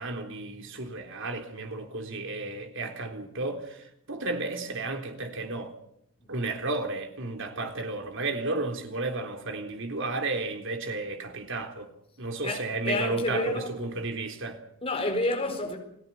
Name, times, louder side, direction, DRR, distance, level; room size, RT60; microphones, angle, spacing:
voice 1, 0.0-5.7 6.3-11.9 12.2-14.6, right 2 dB, 65° right, 3.8 m, -33 dB
voice 2, 12.4-13.7 14.8-15.8, left 2 dB, 30° left, 4.6 m, -29 dB
29.5 x 17.0 x 7.3 m
head